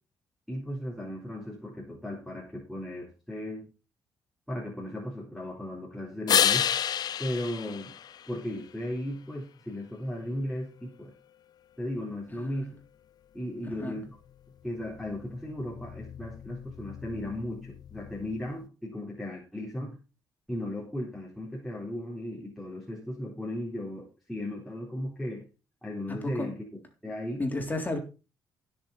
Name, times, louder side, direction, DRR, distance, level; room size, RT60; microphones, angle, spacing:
voice 1, 0.5-3.7 4.5-6.7 7.2-7.9 8.3-11.1 11.8-12.8 13.3-14.2 14.6-20.0 20.5-25.4 25.8-26.6 27.0-27.5, left 1 dB, ahead, 3.9 m, -36 dB
sound 1, 6.3-8.8 14.6-18.6, left 9 dB, 60° left, 0.4 m, -31 dB
voice 2, 12.3-12.7 13.6-14.0 26.2-26.5 27.4-28.0, left 2 dB, 20° left, 3.7 m, -33 dB
16.0 x 7.0 x 4.2 m
cardioid pair, 95°, 8 cm